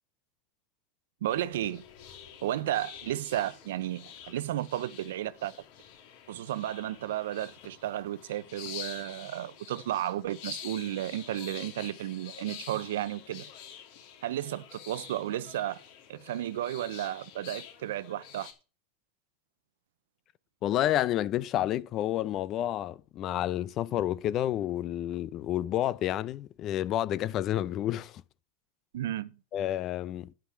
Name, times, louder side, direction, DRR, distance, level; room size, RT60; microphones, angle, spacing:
voice 1, 1.2-1.8 2.4-5.5 6.3-13.5 14.2-15.8 16.1-18.5 28.9-29.4, right 13 dB, 85° right, 0.7 m, -33 dB
sound 1, 1.3-18.5, left 9 dB, 65° left, 2.8 m, -47 dB
voice 2, 20.6-28.2 29.5-30.3, left 12 dB, 40° left, 0.6 m, -30 dB
9.9 x 5.9 x 6.8 m
supercardioid pair, 135°, 0 cm